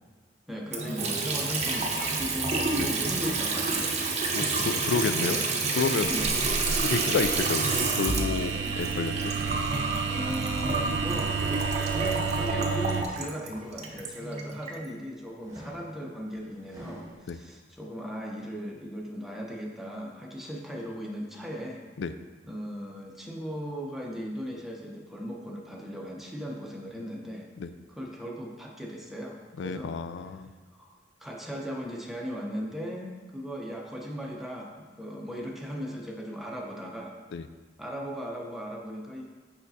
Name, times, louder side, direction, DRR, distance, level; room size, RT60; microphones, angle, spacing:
voice 1, 0.5-5.4 6.1-6.4 10.1-11.6 11.9-21.8 22.5-27.5 28.0-29.9 30.7-30.9 31.2-37.1 37.8-39.2, equal, ahead, -1 dB, 0.7 m, -37 dB
Water tap faucet / Sink (filling or washing) / Trickle dribble, 0.7-14.8, right 3 dB, 35° right, 0.7 m, -29 dB
voice 2, 4.3-5.4 5.7-6.1 6.8-9.3 17.3-17.4 22.0-22.1 27.6-27.7 29.6-30.5 37.3-37.5, left 5 dB, 70° left, 11 dB, 0.4 m, -30 dB
sound 1, 6.0-13.0, right 6 dB, 70° right, 0.4 m, -31 dB
sound 2, 12.5-12.7 13.2-14.8 15.4-17.2, right 1 dB, 15° right, 1.3 m, -46 dB
6.4 x 5.8 x 2.7 m, 1.4 s
head